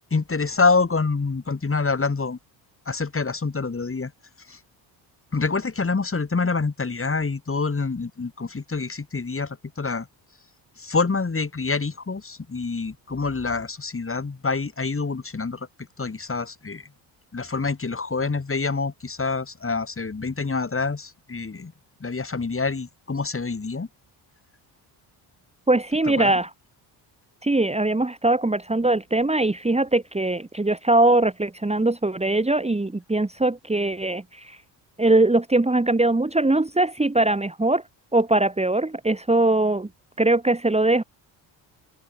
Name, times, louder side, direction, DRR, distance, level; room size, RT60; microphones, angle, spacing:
voice 1, 0.1-2.4 2.9-4.1 4.5-4.6 5.3-10.1 10.8-15.7 16.0-16.9 17.3-21.7 22.0-23.9 26.0-26.4, left 4 dB, 25° left, 4.0 m, -26 dB
voice 2, 25.7-26.5 27.4-34.6 35.0-37.8 38.1-39.9 40.2-41.0, right 2 dB, 15° right, 2.3 m, -21 dB
supercardioid pair, 70°, 49 cm